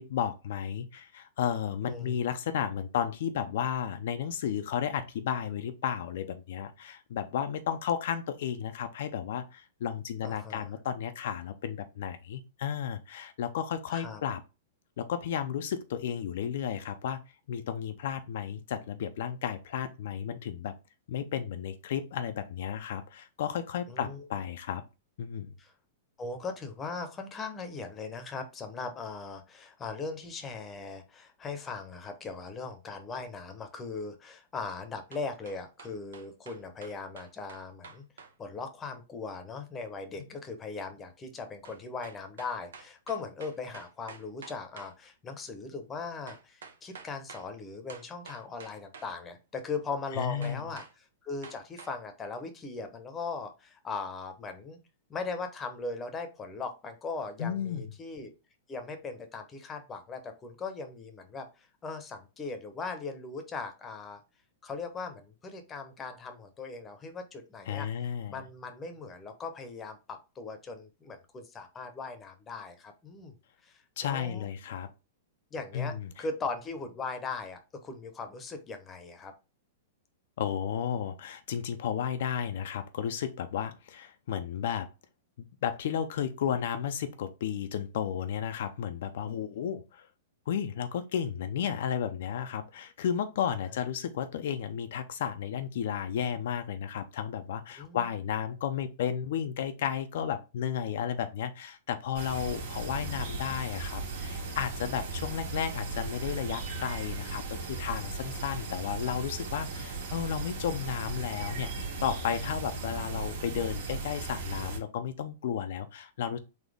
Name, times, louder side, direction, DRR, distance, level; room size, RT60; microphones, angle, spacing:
voice 1, 0.0-14.4 15.0-17.2 17.5-20.8 21.1-24.8 25.2-25.5 50.1-50.6 57.4-57.9 67.7-68.4 74.0-74.9 75.7-76.2 80.4-84.9 85.6-90.1 90.5-111.7 112.0-116.4, left 8 dB, 70° left, 0.5 m, -33 dB
voice 2, 10.2-10.7 13.9-14.2 23.9-24.2 25.6-25.7 26.2-38.0 38.4-54.8 55.1-58.3 58.7-64.2 64.6-67.9 68.3-73.3 73.6-74.5 75.5-79.3 97.8-98.1, left 4 dB, 20° left, 0.8 m, -39 dB
sound 1, 35.1-38.3 41.6-44.9 46.3-47.5 47.9-49.1 50.4-50.9 51.4-52.0, right 5 dB, 90° right, 0.9 m, -49 dB
sound 2, 102.1-114.8, right 3 dB, 65° right, 1.8 m, -37 dB
4.0 x 2.8 x 3.4 m
hypercardioid pair, 140°, 0 cm